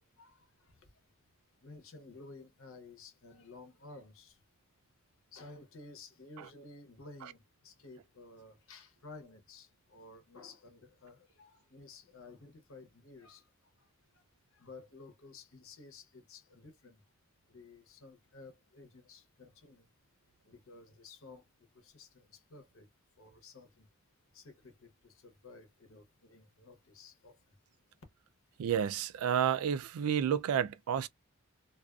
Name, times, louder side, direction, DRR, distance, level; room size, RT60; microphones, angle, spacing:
voice 1, 1.6-4.3 5.3-13.4 14.5-17.0 17.5-19.9 20.5-21.4 21.8-22.9 23.2-23.8 24.3-27.3, left 3 dB, 70° left, 0.8 m, -53 dB
voice 2, 28.6-31.1, right 8 dB, 80° right, 0.3 m, -30 dB
2.4 x 2.3 x 2.3 m
head